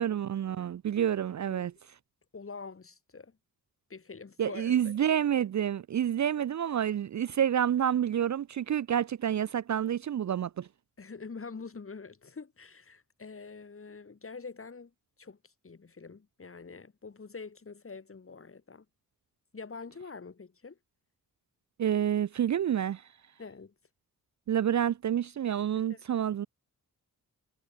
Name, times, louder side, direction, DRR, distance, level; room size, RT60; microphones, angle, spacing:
voice 1, 0.0-1.7 4.4-10.7 21.8-23.0 24.5-26.5, right 9 dB, 50° right, 0.5 m, -28 dB
voice 2, 2.3-3.4 3.9-5.0 11.0-14.9 15.2-15.4 15.6-18.8 19.5-20.8 23.4-23.7 25.9-26.0, left 4 dB, 35° left, 4.9 m, -45 dB
wide cardioid pair, 145°, 36 cm